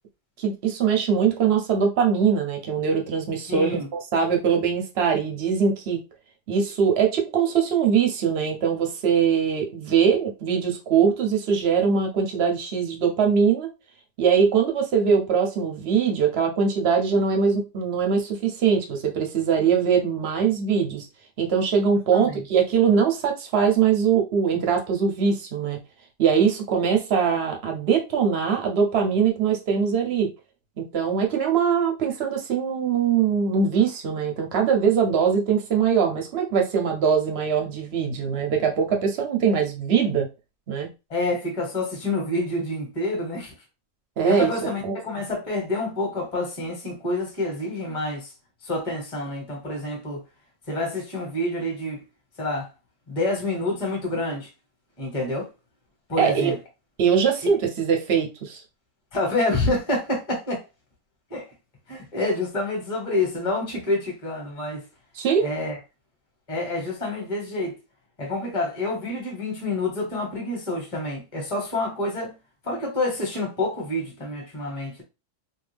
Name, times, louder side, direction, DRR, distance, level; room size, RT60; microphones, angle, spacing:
voice 1, 0.4-6.0 6.5-13.7 14.2-21.1 21.4-25.8 26.2-30.3 30.8-40.3 40.7-40.9 44.2-44.5 44.8-45.0 56.2-56.5 57.0-58.6 65.1-65.5, right 6 dB, 60° right, 0.6 m, -22 dB
voice 2, 3.5-3.9 22.1-22.4 41.1-43.5 44.2-48.3 48.6-50.2 50.7-52.0 52.4-52.7 53.1-54.5 55.0-55.5 56.1-56.6 59.1-60.6 61.3-61.5 61.9-64.8 65.4-65.8 66.5-67.8 68.2-72.3 72.6-75.0, left 2 dB, 25° left, 1.0 m, -27 dB
2.6 x 2.3 x 3.3 m
omnidirectional pair, 1.8 m